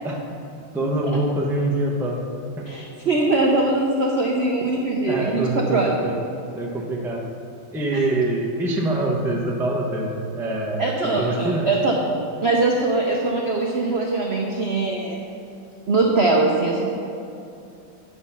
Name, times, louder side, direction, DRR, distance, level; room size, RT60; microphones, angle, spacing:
voice 1, 0.7-2.2 2.6-2.7 5.1-6.2 6.5-7.3 7.7-11.7, right 1 dB, 5° right, -1 dB, 0.4 m, -24 dB
voice 2, 2.7-5.4 5.7-5.9 7.9-8.2 10.8-11.9 12.4-15.2 15.9-16.9, right 2 dB, 70° right, -1 dB, 0.6 m, -22 dB
9.4 x 6.4 x 5.8 m, 2.6 s
omnidirectional pair, 2.3 m